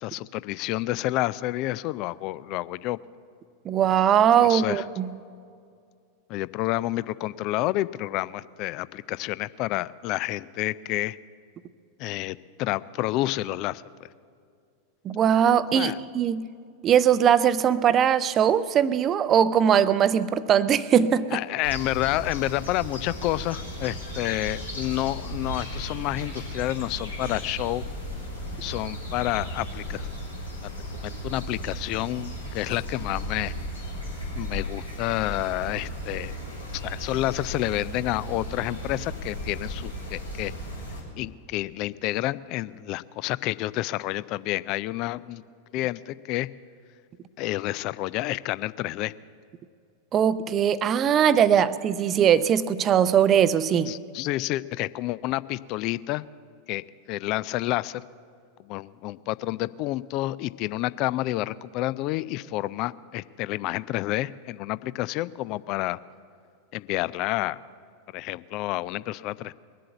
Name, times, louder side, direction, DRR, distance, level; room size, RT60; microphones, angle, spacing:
voice 1, 0.0-3.0 4.4-4.8 6.3-11.2 12.0-13.8 15.7-16.0 21.3-27.8 28.6-30.1 30.6-33.5 34.3-36.3 36.8-40.5 41.2-45.4 45.7-46.5 47.4-49.1 53.9-56.2 56.7-58.0 58.6-66.0 66.7-67.6 68.1-69.5, left 17 dB, 40° left, 18 dB, 0.4 m, -29 dB
voice 2, 3.7-5.1 15.0-16.5 16.8-21.4 50.1-53.9, right 9 dB, 30° right, 16 dB, 0.5 m, -21 dB
sound 1, 21.6-41.0, equal, 85° left, 4.3 m, -35 dB
21.0 x 7.6 x 8.1 m, 2.3 s
figure-of-eight pair, 90°, 0 cm